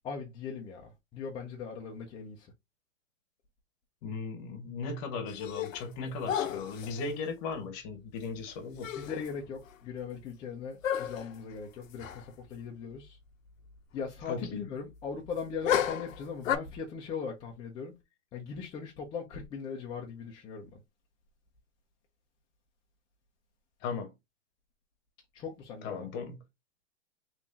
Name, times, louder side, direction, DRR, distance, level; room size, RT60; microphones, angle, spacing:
voice 1, 0.0-2.5 8.9-13.2 13.9-18.0 18.3-20.8 25.3-26.1, left 6 dB, 15° left, 0.4 m, -39 dB
voice 2, 4.0-9.0 14.3-14.7 23.8-24.1 25.8-26.4, left 4 dB, 35° left, 0.9 m, -37 dB
sound 1, 5.3-5.9 6.3-7.0 8.5-8.6 8.8-9.3 9.7-9.8 10.8-11.4 12.0-12.2 12.5-12.6 15.6-16.6, left 9 dB, 85° left, 0.7 m, -32 dB
3.4 x 3.0 x 2.5 m
hypercardioid pair, 130°, 39 cm